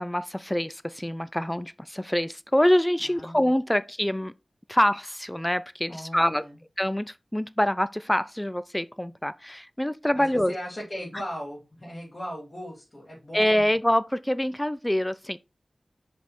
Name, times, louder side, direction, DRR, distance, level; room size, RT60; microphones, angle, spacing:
voice 1, 0.0-4.3 4.7-6.4 6.8-10.5 13.3-15.4, left 1 dB, 10° left, 0.4 m, -25 dB
voice 2, 3.0-3.5 5.9-6.6 10.1-13.7, equal, 30° left, 3.5 m, -38 dB
5.3 x 5.1 x 4.4 m
wide cardioid pair, 90°, 0 cm